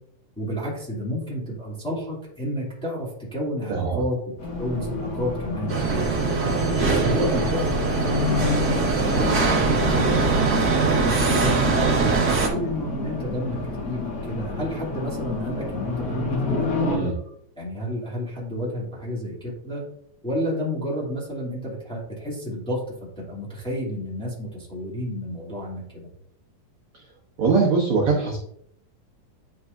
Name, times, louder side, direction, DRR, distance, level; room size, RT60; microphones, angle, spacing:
voice 1, 0.4-4.2 4.6-6.4 6.8-7.7 8.0-10.8 11.3-17.1 17.6-19.8 20.2-22.8 23.2-26.1, equal, ahead, -5 dB, 2.1 m, -31 dB
voice 2, 3.7-4.0 16.8-17.1 26.9-27.1 27.4-28.4, right 4 dB, 60° right, -2 dB, 1.5 m, -22 dB
Race car auto racing, 4.4-17.0, left 4 dB, 85° left, 0.8 m, -29 dB
sound 1, 5.7-12.5, right 4 dB, 40° right, 1.6 m, -22 dB
10.5 x 4.9 x 2.6 m, 0.71 s
omnidirectional pair, 3.9 m